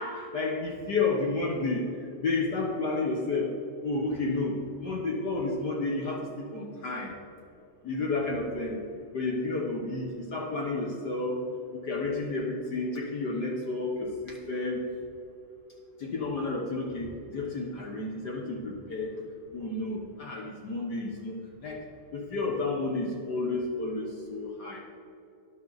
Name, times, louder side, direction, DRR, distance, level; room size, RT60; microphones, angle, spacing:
voice 1, 0.0-3.5 3.8-7.1 7.8-8.8 9.1-11.4 11.7-14.8 16.0-19.2 19.5-21.8 22.1-24.8, left 3 dB, 60° left, -1 dB, 1.1 m, -31 dB
13.0 x 10.5 x 4.0 m, 2.7 s
omnidirectional pair, 3.4 m